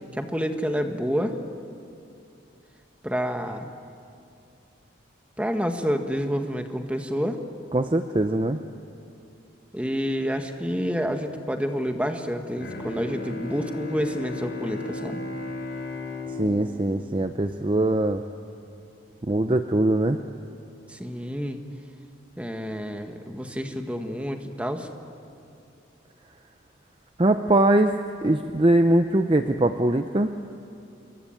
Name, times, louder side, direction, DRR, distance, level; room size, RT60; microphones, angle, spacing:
voice 1, 0.1-1.3 3.0-3.7 5.4-7.4 9.7-15.2 20.9-21.6 22.4-24.9, equal, 5° right, 5 dB, 1.4 m, -28 dB
voice 2, 7.7-8.6 16.3-18.2 19.2-20.2 27.2-27.9 28.2-30.3, right 1 dB, 25° right, 7 dB, 0.6 m, -22 dB
Bowed string instrument, 12.6-18.2, left 2 dB, 55° left, 4.6 m, -36 dB
26.5 x 23.5 x 8.8 m, 2.5 s
head